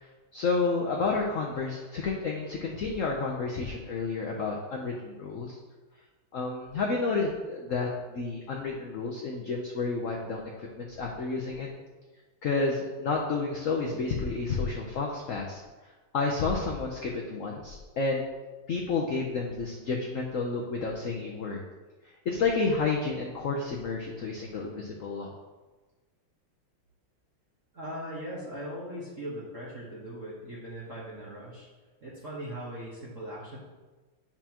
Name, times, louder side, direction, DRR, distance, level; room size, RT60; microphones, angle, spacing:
voice 1, 0.3-5.6 6.3-11.7 12.4-15.6 16.1-18.3 18.7-21.6 22.2-25.3, left 4 dB, 65° left, -1 dB, 0.7 m, -30 dB
voice 2, 27.7-31.7 32.0-33.6, equal, 40° right, -7 dB, 1.5 m, -39 dB
9.0 x 5.9 x 2.9 m, 1.2 s
omnidirectional pair, 2.3 m